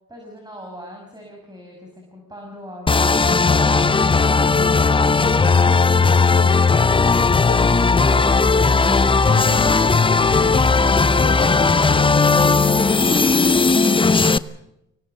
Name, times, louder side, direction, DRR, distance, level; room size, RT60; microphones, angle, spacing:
voice 1, 0.1-5.3, equal, 15° right, 1 dB, 6.1 m, -41 dB
sound 1, 2.9-14.4, left 4 dB, 15° left, 0.7 m, -16 dB
voice 2, 6.3-7.9 8.1-8.5 9.2-14.3, left 7 dB, 55° left, 1 dB, 5.5 m, -35 dB
24.0 x 18.0 x 6.8 m, 0.82 s
cardioid pair, 90°, 30 cm